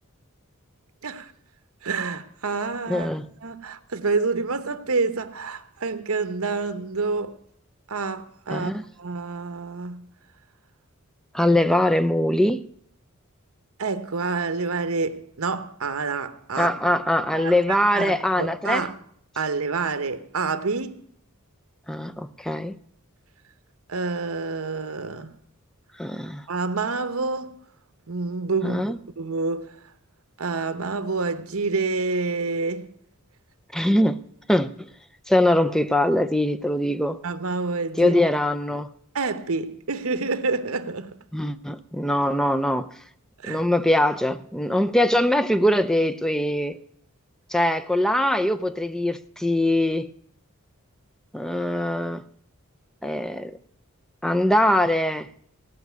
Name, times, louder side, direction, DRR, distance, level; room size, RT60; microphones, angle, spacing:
voice 1, 1.8-7.4 7.9-8.7 9.0-10.0 13.8-16.7 17.3-19.0 19.4-21.0 23.9-25.3 26.5-27.6 28.1-28.8 29.2-29.7 30.4-32.9 37.2-38.2 39.1-41.2 43.4-43.6, right 4 dB, 75° right, 1.0 m, -28 dB
voice 2, 2.9-3.3 8.5-8.8 11.3-12.7 16.6-18.9 21.9-22.8 26.0-26.4 28.6-29.0 33.7-34.2 34.5-34.9 35.3-37.2 38.0-38.9 41.3-42.9 43.5-46.8 47.5-50.1 51.3-52.2 53.0-53.6 54.2-55.3, left 1 dB, ahead, 0.5 m, -22 dB
17.5 x 5.9 x 9.3 m
head